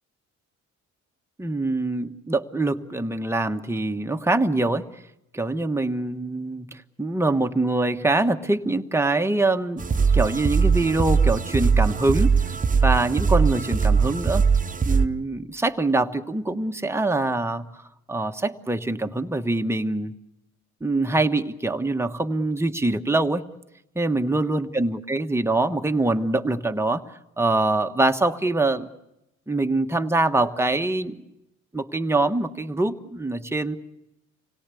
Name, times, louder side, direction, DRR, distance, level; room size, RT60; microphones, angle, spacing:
voice 1, 1.4-4.8 5.3-12.3 12.8-14.4 14.9-17.7 18.1-20.1 20.8-23.4 23.9-27.0 27.4-28.9 29.5-31.2 31.7-33.8, right 2 dB, 10° right, 6 dB, 1.2 m, -24 dB
sound 1, 9.8-15.1, right 5 dB, 25° right, 0.9 m, -21 dB
26.5 x 17.5 x 8.4 m, 0.90 s
cardioid pair, 90°, 30 cm